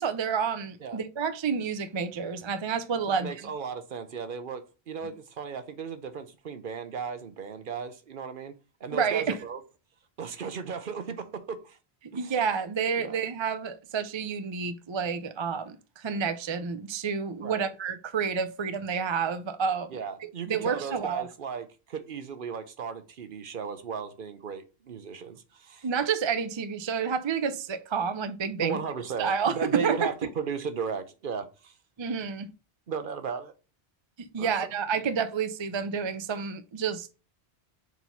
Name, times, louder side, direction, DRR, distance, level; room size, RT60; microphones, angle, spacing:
voice 1, 0.0-3.3 8.9-9.4 12.1-20.0 20.5-21.3 25.8-28.8 29.2-30.1 32.0-32.5 34.2-37.1, right 6 dB, 40° right, 0.4 m, -29 dB
voice 2, 3.1-8.6 8.8-9.6 10.2-11.8 12.1-12.3 13.0-13.2 17.4-17.7 19.9-25.9 28.6-31.7 32.9-33.5 34.4-34.7, right 6 dB, 60° right, 0.9 m, -36 dB
4.6 x 4.0 x 5.5 m
omnidirectional pair, 1.1 m